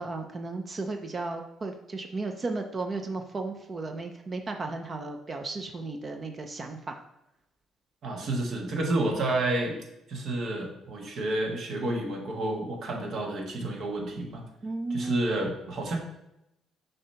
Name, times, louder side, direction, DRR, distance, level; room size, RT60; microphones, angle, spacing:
voice 1, 0.0-7.0 14.6-15.2, right 3 dB, 35° right, 4 dB, 0.6 m, -34 dB
voice 2, 8.0-9.8 10.1-14.4 14.9-16.0, right 2 dB, 60° right, 1 dB, 1.4 m, -30 dB
6.6 x 2.9 x 5.6 m, 0.85 s
cardioid pair, 105°, 0 cm